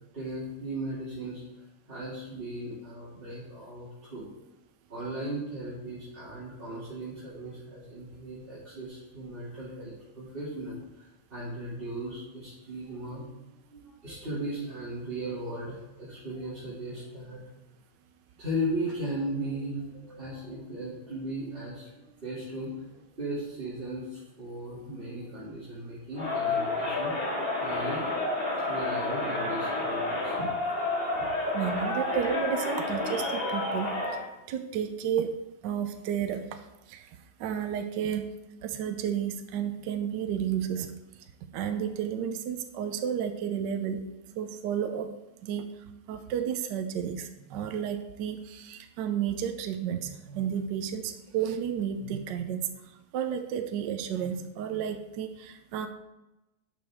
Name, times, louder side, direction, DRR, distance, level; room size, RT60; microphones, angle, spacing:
voice 1, 0.1-4.3 4.9-13.3 13.7-17.4 18.4-22.8 23.1-27.1 27.5-28.0 28.7-30.5, right 1 dB, 30° right, -11 dB, 2.6 m, -37 dB
Crowd, 26.1-34.3, left 2 dB, 30° left, 1.9 m, -30 dB
voice 2, 31.5-33.9 34.5-35.4 35.6-36.6 36.9-37.1 37.4-38.3 38.6-40.9 41.5-44.0 44.4-45.1 45.4-45.6 46.1-52.7 53.1-55.9, right 8 dB, 70° right, 7 dB, 1.2 m, -32 dB
11.5 x 6.1 x 3.5 m, 0.98 s
omnidirectional pair, 2.1 m